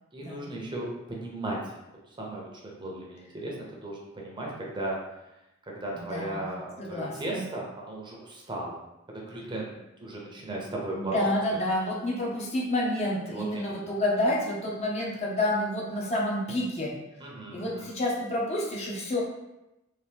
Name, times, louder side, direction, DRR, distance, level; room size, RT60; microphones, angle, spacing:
voice 1, 0.1-1.7 2.1-5.0 5.8-8.8 9.1-11.3 13.3-13.9 17.2-17.9, right 1 dB, 25° right, -2 dB, 0.6 m, -36 dB
voice 2, 5.9-6.5 6.8-7.5 10.9-16.9 17.5-19.2, left 1 dB, 30° left, -3 dB, 0.6 m, -29 dB
2.8 x 2.6 x 3.5 m, 0.93 s
head